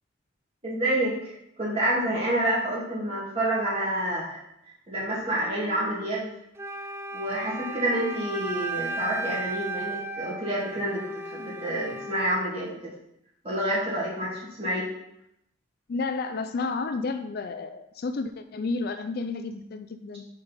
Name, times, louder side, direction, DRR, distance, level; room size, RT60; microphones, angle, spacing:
voice 1, 0.6-4.4 4.9-6.3 7.1-12.8 13.4-14.9, right 1 dB, 30° right, -7 dB, 2.5 m, -28 dB
Wind instrument woodwind instrument, 6.6-12.5, right 2 dB, 15° right, 0.4 m, -35 dB
voice 2, 15.9-20.3, left 3 dB, 55° left, 9 dB, 0.4 m, -31 dB
5.1 x 4.6 x 5.4 m, 0.79 s
head